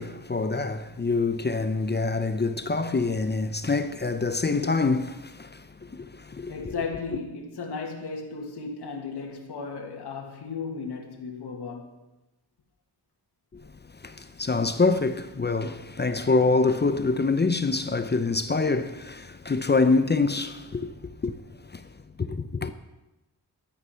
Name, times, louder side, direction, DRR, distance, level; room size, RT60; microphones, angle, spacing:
voice 1, 0.0-6.8 13.5-13.6 14.0-21.4 21.7-21.9 22.2-22.7, left 3 dB, 25° left, 0.7 m, -26 dB
voice 2, 6.5-12.0, left 4 dB, 85° left, 2.0 m, -35 dB
13.0 x 11.0 x 5.7 m
wide cardioid pair, 110°, 39 cm